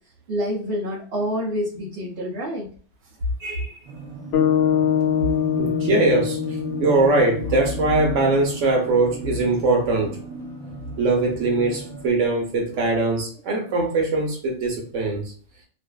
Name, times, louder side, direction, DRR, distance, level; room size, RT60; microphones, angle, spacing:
voice 1, 0.3-2.7, equal, 65° right, 1.0 m, -27 dB
voice 2, 3.4-3.7 5.6-6.4 6.8-10.2 11.0-15.3, right 2 dB, 80° right, 1.1 m, -21 dB
sound 1, 3.8-12.1, right 5 dB, 30° right, 0.5 m, -36 dB
sound 2, 4.3-8.6, left 9 dB, 65° left, 0.8 m, -24 dB
2.5 x 2.5 x 2.2 m
omnidirectional pair, 1.3 m